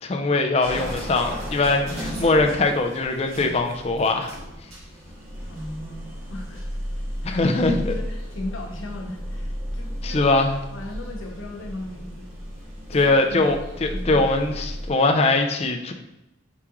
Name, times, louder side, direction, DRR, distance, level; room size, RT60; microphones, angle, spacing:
voice 1, 0.0-4.3 7.2-7.9 10.0-10.5 12.9-15.9, left 2 dB, 30° left, 4 dB, 0.4 m, -21 dB
sound 1, 0.6-14.9, equal, 90° right, 1.6 m, -34 dB
voice 2, 5.5-7.4 7.8-10.3 10.7-12.3 12.9-13.5 13.9-14.3, left 1 dB, 75° left, 1 dB, 0.9 m, -37 dB
4.8 x 3.6 x 3.0 m, 0.93 s
head